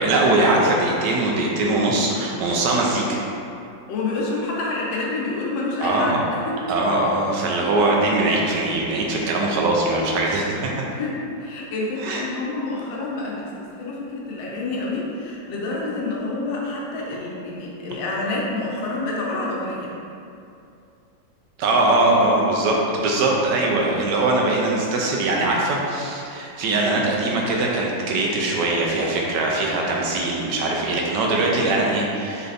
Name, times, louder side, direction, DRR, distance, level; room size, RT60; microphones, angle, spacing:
voice 1, 0.0-3.2 5.8-6.2 6.7-10.7 12.0-12.2 21.6-32.5, right 2 dB, 70° right, -2 dB, 1.1 m, -21 dB
voice 2, 3.9-6.1 6.4-6.6 10.9-19.9, left 2 dB, 75° left, -3 dB, 1.3 m, -28 dB
3.9 x 3.3 x 2.5 m, 2.6 s
omnidirectional pair, 2.1 m